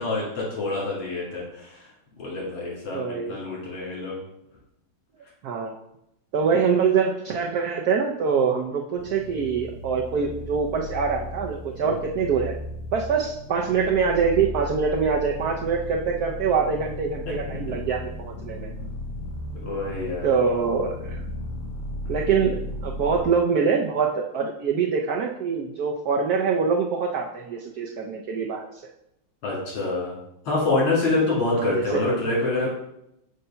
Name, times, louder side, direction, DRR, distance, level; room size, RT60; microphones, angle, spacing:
voice 1, 0.0-1.9 2.2-4.2 11.8-11.9 17.5-17.6 19.6-20.3 29.4-30.2 30.4-32.7, left 2 dB, 80° left, -6 dB, 3.2 m, -26 dB
voice 2, 2.9-3.4 5.4-5.8 6.3-12.5 12.9-18.7 20.2-21.2 22.1-28.7 31.5-32.1, right 5 dB, 80° right, 0 dB, 0.8 m, -24 dB
sound 1, 9.0-23.2, left 1 dB, 65° left, 0.8 m, -36 dB
6.4 x 2.7 x 5.5 m, 0.81 s
omnidirectional pair, 2.3 m